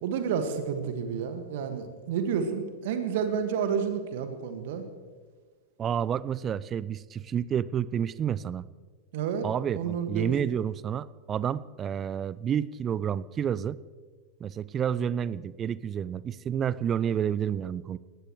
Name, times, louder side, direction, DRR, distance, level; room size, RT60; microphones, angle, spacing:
voice 1, 0.0-4.8 9.1-9.5 9.8-10.3, right 7 dB, 55° right, 7 dB, 1.9 m, -30 dB
voice 2, 5.8-8.6 9.4-13.8 14.4-18.0, right 8 dB, 25° right, 19 dB, 0.5 m, -30 dB
20.0 x 18.0 x 3.2 m, 1.5 s
figure-of-eight pair, 90°, 0 cm